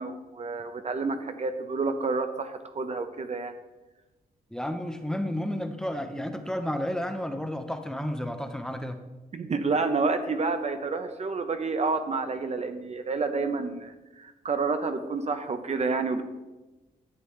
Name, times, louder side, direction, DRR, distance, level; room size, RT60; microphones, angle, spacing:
voice 1, 0.0-3.5 9.3-16.2, right 4 dB, 45° right, 8 dB, 0.8 m, -29 dB
voice 2, 4.5-9.0, left 1 dB, 5° left, 6 dB, 0.8 m, -31 dB
11.5 x 7.5 x 3.2 m, 1.1 s
cardioid pair, 80°, 16 cm